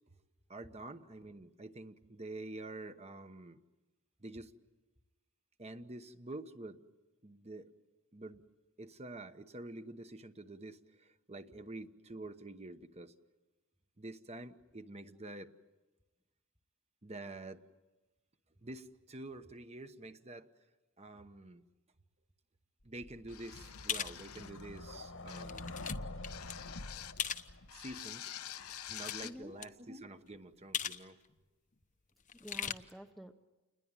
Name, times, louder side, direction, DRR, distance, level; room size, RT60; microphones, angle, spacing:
voice 1, 0.5-3.6 4.2-4.5 5.6-6.8 7.2-7.7 8.1-8.4 8.8-13.1 14.0-15.5 17.0-17.6 18.6-20.5 21.0-21.6 22.8-25.7 27.7-31.2, right 2 dB, 30° right, 9 dB, 1.1 m, -48 dB
sound 1, 23.0-27.9, left 2 dB, 60° left, 1.5 m, -46 dB
sound 2, 23.3-24.6 25.3-25.6 26.2-27.3 27.7-29.4, left 11 dB, 80° left, 0.9 m, -47 dB
sound 3, 23.9-24.2 24.8-24.9 25.4-26.0 26.2-26.5 27.2-27.5 28.6-29.4 29.6-29.7 30.7-31.0 31.3-31.4 32.3-32.7, left 9 dB, 35° left, 0.9 m, -38 dB
voice 2, 28.9-29.5 32.4-33.3, equal, ahead, 5 dB, 0.8 m, -50 dB
29.5 x 21.0 x 9.0 m, 1.1 s
head